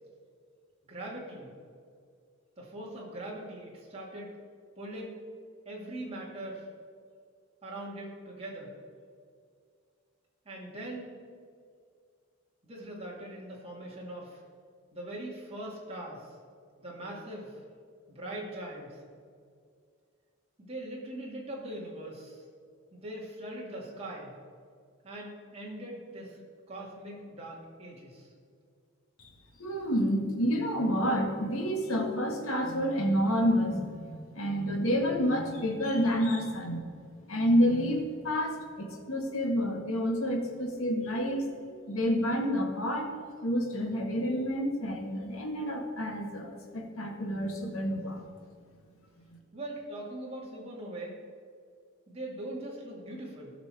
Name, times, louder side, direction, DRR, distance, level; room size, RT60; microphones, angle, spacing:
voice 1, 0.9-1.5 2.6-4.3 4.8-5.2 5.7-6.7 7.6-8.7 10.5-11.1 12.6-14.4 14.9-16.3 16.8-17.6 18.1-19.0 20.6-22.4 22.9-24.3 25.0-26.4 26.7-28.3 49.5-51.2 52.1-53.5, right 1 dB, 30° right, -4 dB, 2.3 m, -41 dB
voice 2, 29.6-36.8 37.3-43.2 43.4-48.2, equal, 80° left, 2 dB, 1.8 m, -29 dB
16.0 x 6.1 x 4.9 m, 2.2 s
head